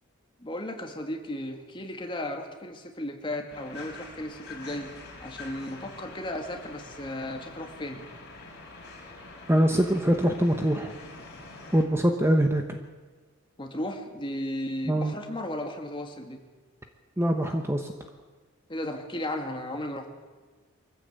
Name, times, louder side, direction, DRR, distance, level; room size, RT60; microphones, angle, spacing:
voice 1, 0.4-8.1 13.6-16.4 18.7-20.1, left 1 dB, 20° left, 3 dB, 2.2 m, -35 dB
sound 1, 3.5-11.8, left 3 dB, 50° left, 4.8 m, -45 dB
voice 2, 9.5-10.9 11.7-12.8 14.9-15.1 17.2-17.9, right 1 dB, 10° right, 4 dB, 1.1 m, -23 dB
23.5 x 15.0 x 8.2 m, 1.4 s
head